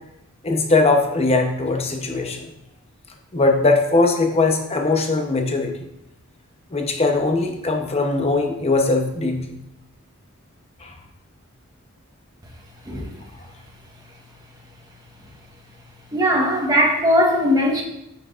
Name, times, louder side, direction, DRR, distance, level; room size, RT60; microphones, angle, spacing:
voice 1, 0.4-2.5 3.3-5.9 6.7-9.5 10.8-10.9, left 3 dB, 30° left, 3 dB, 0.9 m, -20 dB
voice 2, 16.1-17.8, equal, 20° right, -1 dB, 1.3 m, -19 dB
8.6 x 5.9 x 2.5 m, 0.82 s
head